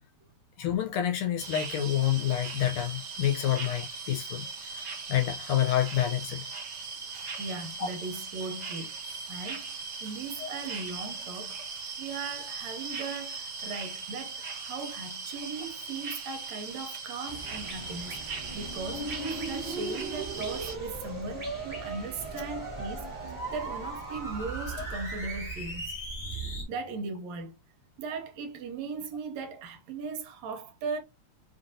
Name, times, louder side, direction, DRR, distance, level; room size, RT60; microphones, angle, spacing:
voice 1, 0.6-6.4 7.8-7.9 10.4-10.5 24.8-24.9, left 11 dB, 80° left, 1.6 m, -28 dB
sound 1, 1.4-20.7, right 4 dB, 55° right, 1.5 m, -39 dB
voice 2, 7.4-9.0 9.3-11.6 12.0-18.2 18.5-19.2 19.5-25.9 26.2-27.6 28.0-31.0, right 4 dB, 75° right, 1.8 m, -38 dB
sound 2, 17.2-25.3, right 3 dB, 15° right, 1.0 m, -44 dB
sound 3, 18.4-26.6, right 2 dB, 40° left, 1.0 m, -37 dB
5.1 x 2.5 x 2.6 m
omnidirectional pair, 3.4 m